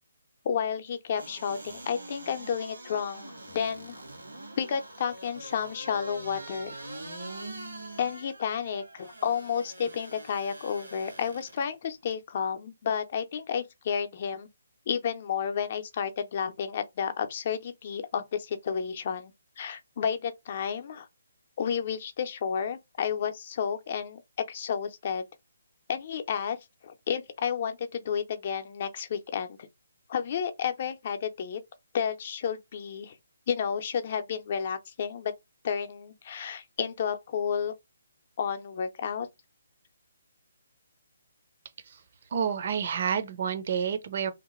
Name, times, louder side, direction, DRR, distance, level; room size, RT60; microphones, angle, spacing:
voice 1, 0.4-4.0 4.6-6.8 8.0-14.5 14.9-21.1 21.6-24.2 24.5-25.3 25.9-26.6 26.8-29.7 30.1-31.6 31.9-33.2 33.5-35.3 35.6-37.7 38.4-39.3, left 7 dB, 45° left, 0.5 m, -31 dB
sound 1, 1.1-11.6 12.1-12.2, right 2 dB, 85° right, 1.4 m, -44 dB
voice 2, 42.3-44.3, right 7 dB, 50° right, 0.6 m, -29 dB
2.9 x 2.2 x 3.0 m
figure-of-eight pair, 145°, 0 cm